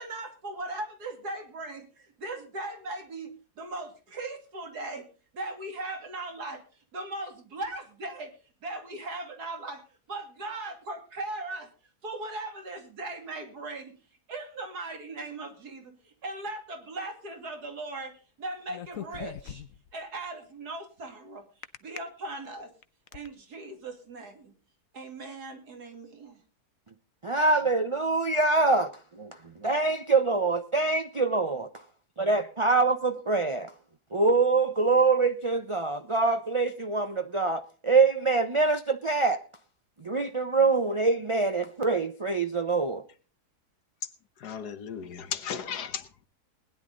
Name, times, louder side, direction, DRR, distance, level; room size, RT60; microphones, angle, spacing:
voice 1, 0.0-5.0 5.3-6.6 6.9-8.3 8.6-9.8 10.1-11.7 12.0-13.9 14.3-18.1 18.4-19.6 19.9-21.4 21.8-22.7 23.1-24.5 24.9-26.4, right 2 dB, 80° right, 3.1 m, -38 dB
sound 1, 18.7-19.9 21.6-22.0 22.6-23.3, left 10 dB, 60° left, 1.1 m, -40 dB
voice 2, 27.2-31.7 32.2-33.7 34.1-39.4 40.0-43.0, right 3 dB, 30° right, 0.6 m, -25 dB
voice 3, 44.4-46.3, left 7 dB, 85° left, 1.7 m, -36 dB
20.0 x 10.5 x 3.9 m
omnidirectional pair, 1.7 m